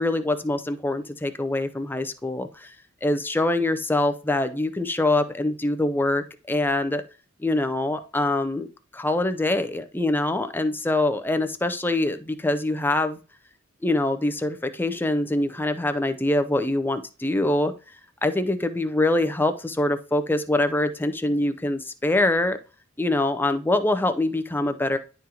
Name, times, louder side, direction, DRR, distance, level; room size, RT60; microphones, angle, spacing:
voice 1, 0.0-2.7 3.0-7.0 7.4-8.7 8.9-13.2 13.8-17.7 18.2-22.6 23.0-25.0, left 2 dB, 10° left, 9 dB, 0.5 m, -24 dB
10.5 x 3.8 x 2.8 m, 0.34 s
head